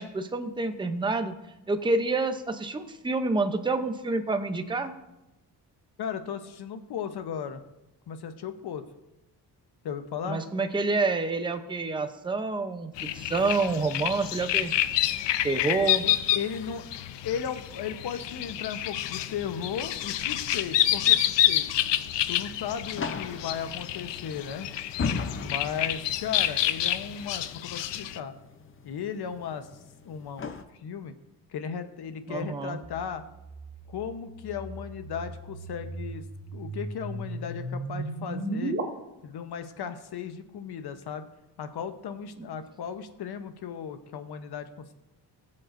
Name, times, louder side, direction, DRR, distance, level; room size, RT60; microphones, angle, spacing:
voice 1, 0.0-1.4 1.7-4.9 10.3-14.7 15.4-16.1 32.3-32.8 42.4-42.5, right 3 dB, 10° right, 7 dB, 0.6 m, -28 dB
voice 2, 6.0-7.6 8.1-8.8 9.8-10.4 16.0-16.8 17.2-21.7 22.3-24.7 25.4-28.3 28.8-29.7 30.0-30.5 30.8-31.1 31.5-33.2 33.9-36.2 36.5-38.8 39.2-41.2 41.6-44.9, left 7 dB, 65° left, 9 dB, 1.0 m, -36 dB
sound 1, 13.0-28.2, left 12 dB, 85° left, 0.6 m, -28 dB
sound 2, 18.1-30.6, left 5 dB, 30° left, 0.6 m, -40 dB
sound 3, 32.8-38.8, right 2 dB, 35° right, 1.8 m, -36 dB
19.5 x 7.6 x 2.6 m, 0.96 s
wide cardioid pair, 150°, 42 cm